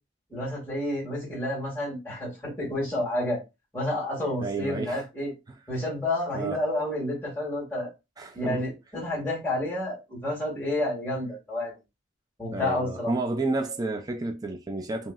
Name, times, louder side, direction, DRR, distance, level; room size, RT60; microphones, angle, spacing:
voice 1, 0.3-3.4 3.7-5.3 5.7-7.9 8.3-11.7 12.4-13.1, left 1 dB, 10° left, 2.2 m, -30 dB
voice 2, 4.4-5.0 6.3-6.6 8.2-8.7 12.5-15.1, right 2 dB, 20° right, 0.4 m, -31 dB
5.5 x 2.8 x 2.4 m
head